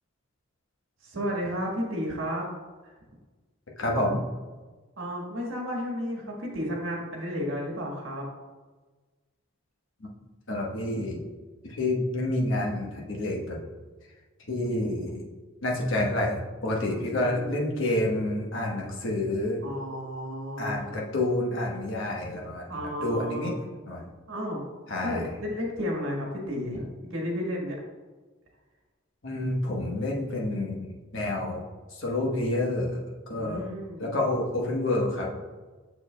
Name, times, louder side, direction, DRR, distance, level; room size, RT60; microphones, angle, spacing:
voice 1, 1.0-2.5 5.0-8.3 17.0-17.9 19.6-20.8 22.7-23.6 24.3-24.6 25.0-27.8 33.3-34.2, equal, 60° right, -1 dB, 1.5 m, -33 dB
voice 2, 3.8-4.2 10.5-11.2 11.6-13.6 14.5-15.2 15.6-19.6 20.6-22.7 23.0-23.5 23.9-24.0 24.9-25.2 29.2-31.7 32.0-33.0 33.3-33.7 34.0-35.3, left 1 dB, 65° left, -2 dB, 1.1 m, -28 dB
6.8 x 6.7 x 2.2 m, 1.3 s
head